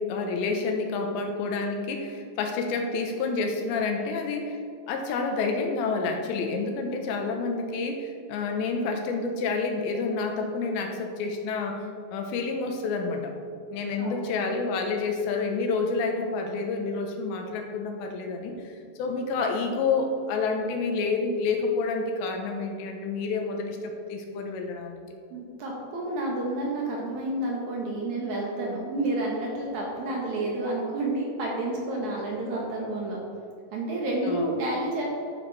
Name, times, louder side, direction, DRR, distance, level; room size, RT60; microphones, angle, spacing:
voice 1, 0.0-4.6 4.9-11.8 12.1-13.3 13.7-18.5 19.0-25.0 34.2-34.4, left 4 dB, 80° left, 4 dB, 3.2 m, -29 dB
voice 2, 14.0-14.4 25.3-33.2 33.7-35.1, right 1 dB, 60° right, -2 dB, 2.1 m, -30 dB
11.5 x 8.5 x 4.1 m, 2.4 s
omnidirectional pair, 5.1 m